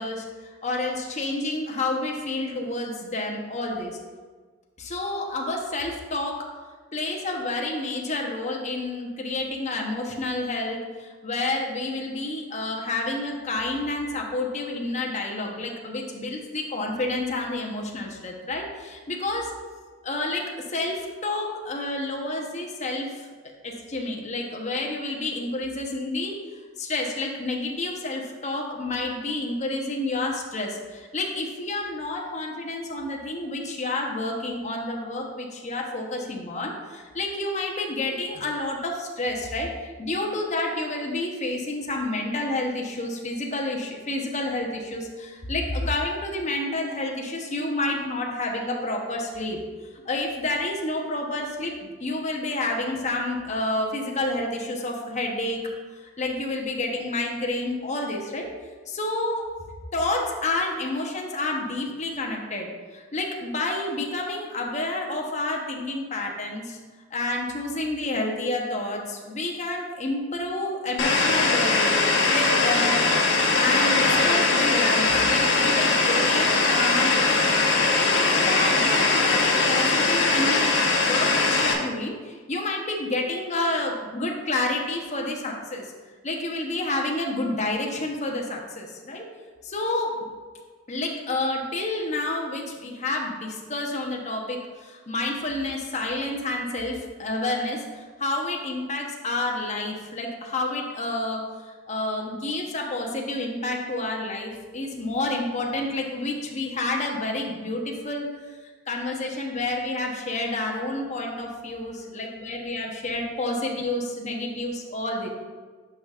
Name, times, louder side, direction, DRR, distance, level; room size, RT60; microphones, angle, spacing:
voice 1, 0.0-4.0 4.8-6.5 6.9-19.6 20.0-23.3 23.6-26.4 26.8-49.6 50.0-55.6 56.2-58.5 58.9-59.5 59.9-66.8 67.1-72.1 72.3-77.6 77.9-85.9 86.2-89.3 89.6-90.2 90.9-108.6 108.9-115.3, left 2 dB, 40° left, 0 dB, 0.9 m, -29 dB
sound 1, 71.0-81.7, left 3 dB, 65° left, 1.2 m, -21 dB
10.0 x 5.6 x 2.4 m, 1.4 s
head